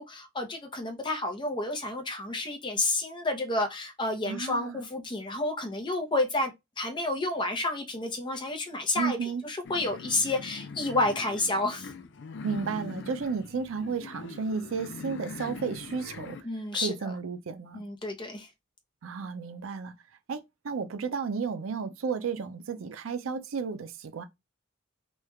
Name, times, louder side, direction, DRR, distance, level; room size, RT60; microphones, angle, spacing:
voice 1, 0.0-6.5 6.8-9.2 9.4-11.9 16.4-17.1 17.7-18.5, left 2 dB, 25° left, 0.7 m, -30 dB
voice 2, 4.2-4.8 9.0-9.4 12.4-16.4 16.7-17.8 19.0-19.9 20.3-24.2, right 5 dB, 85° right, 0.5 m, -33 dB
sound 1, 9.6-16.4, left 4 dB, 60° left, 0.4 m, -42 dB
3.2 x 2.3 x 3.1 m
head